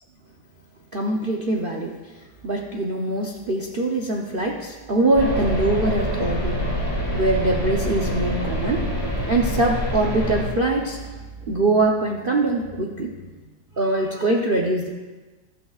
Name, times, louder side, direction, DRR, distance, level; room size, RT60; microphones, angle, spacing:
voice 1, 0.9-2.1 2.4-6.6 7.1-13.2 13.7-14.9, right 2 dB, 75° right, 0 dB, 0.5 m, -23 dB
sound 1, 5.2-10.5, equal, 10° left, 2.0 m, -26 dB
15.5 x 12.5 x 2.4 m, 1.2 s
omnidirectional pair, 2.2 m